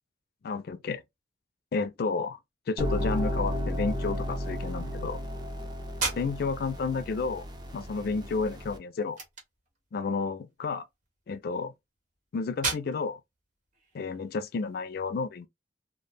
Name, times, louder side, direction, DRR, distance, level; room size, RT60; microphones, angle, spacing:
voice 1, 0.4-1.0 1.7-2.4 2.7-5.2 6.2-7.5 7.7-9.2 9.9-10.9 11.3-11.7 12.3-13.2 13.9-15.5, left 4 dB, 60° left, 0.4 m, -31 dB
sound 1, 2.8-8.8, equal, 25° right, 0.5 m, -33 dB
sound 2, 5.9-14.8, right 4 dB, 45° right, 0.9 m, -40 dB
2.1 x 2.1 x 3.2 m
head